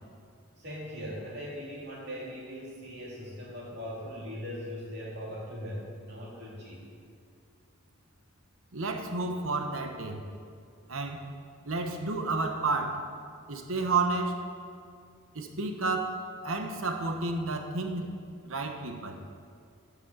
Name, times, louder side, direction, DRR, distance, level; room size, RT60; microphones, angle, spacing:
voice 1, 0.6-6.8, equal, 50° right, -5 dB, 3.0 m, -40 dB
voice 2, 8.7-10.2 10.9-11.3 11.6-13.0 13.5-14.4 15.3-16.2 16.4-18.2 18.4-19.2, right 3 dB, 70° right, 5 dB, 1.1 m, -31 dB
9.9 x 6.1 x 7.4 m, 2.3 s
head